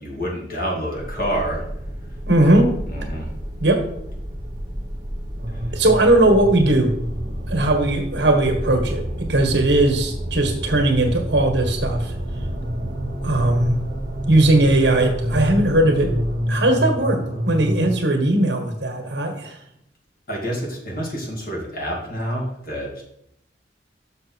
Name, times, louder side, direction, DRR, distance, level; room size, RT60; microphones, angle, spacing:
voice 1, 0.0-1.6 2.9-3.3 5.5-5.8 20.3-23.0, equal, 50° left, -2 dB, 2.5 m, -28 dB
sound 1, 0.9-16.3, equal, 25° right, 1.4 m, -32 dB
voice 2, 2.3-2.7 3.6-3.8 5.7-6.9 7.5-12.1 13.2-13.8 14.3-16.1 16.5-19.6, right 1 dB, 70° right, 4 dB, 1.6 m, -18 dB
sound 2, 5.4-17.9, equal, 45° right, 1.6 m, -29 dB
6.6 x 6.3 x 4.6 m, 0.75 s
head